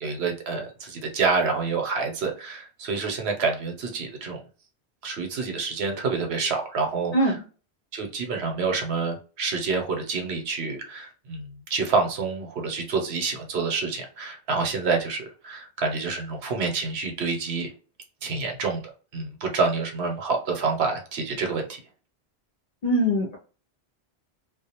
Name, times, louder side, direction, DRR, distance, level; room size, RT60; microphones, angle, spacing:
voice 1, 0.0-4.4 5.0-7.4 7.9-17.7 18.2-18.8 19.1-21.8, right 4 dB, 80° right, 3 dB, 0.9 m, -27 dB
voice 2, 22.8-23.4, equal, 55° left, -1 dB, 0.4 m, -22 dB
2.4 x 2.0 x 2.8 m, 0.37 s
omnidirectional pair, 1.1 m